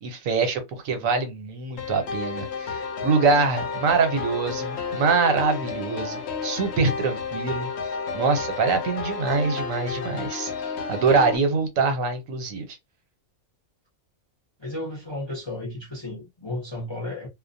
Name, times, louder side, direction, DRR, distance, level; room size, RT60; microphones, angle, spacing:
voice 1, 0.0-7.7 8.1-10.5 10.9-12.7, right 4 dB, 75° right, 1.1 m, -24 dB
sound 1, 1.8-11.4, left 5 dB, 60° left, 0.7 m, -32 dB
voice 2, 14.6-17.3, left 1 dB, 30° left, 0.5 m, -33 dB
2.4 x 2.0 x 2.5 m
omnidirectional pair, 1.4 m